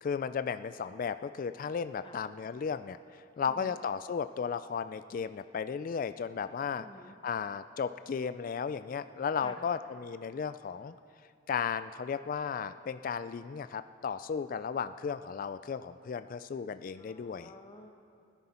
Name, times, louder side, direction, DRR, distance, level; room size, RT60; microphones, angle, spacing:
voice 1, 0.0-6.9 7.2-10.9 11.5-17.5, left 6 dB, 45° left, 12 dB, 0.3 m, -35 dB
voice 2, 6.8-7.1 9.4-9.6 17.0-17.9, left 2 dB, 25° left, 3 dB, 1.1 m, -50 dB
21.5 x 10.5 x 4.3 m, 2.4 s
head